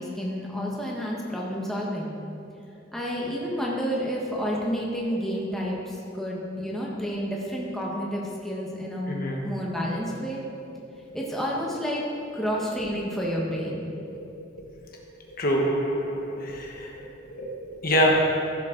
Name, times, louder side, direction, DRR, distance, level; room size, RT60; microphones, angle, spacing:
voice 1, 0.0-2.2 2.9-9.2 9.4-10.4 11.1-12.0 12.3-13.9, equal, ahead, -4 dB, 1.4 m, -30 dB
voice 2, 9.1-9.5 14.0-14.2 15.3-18.2, equal, 45° left, -1 dB, 1.3 m, -26 dB
15.5 x 7.4 x 3.9 m, 2.7 s
head